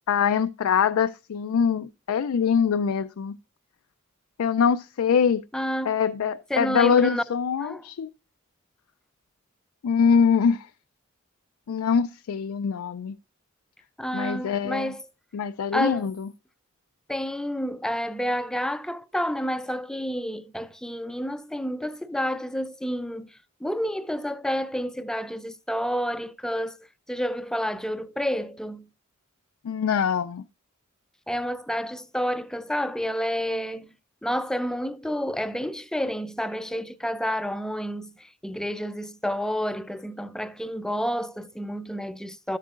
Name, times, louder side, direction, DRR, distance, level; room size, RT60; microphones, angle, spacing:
voice 1, 0.1-3.4 4.4-5.4 5.9-8.1 9.8-10.7 11.7-13.2 14.1-14.9 15.3-16.3 29.6-30.4, left 6 dB, 85° left, 0.4 m, -23 dB
voice 2, 5.5-6.0 6.5-7.2 7.6-7.8 14.0-15.0 15.7-16.1 17.1-23.3 23.6-26.8 27.1-28.8 31.3-33.9 34.2-42.6, equal, 5° left, 0.4 m, -29 dB
12.5 x 7.4 x 2.4 m
head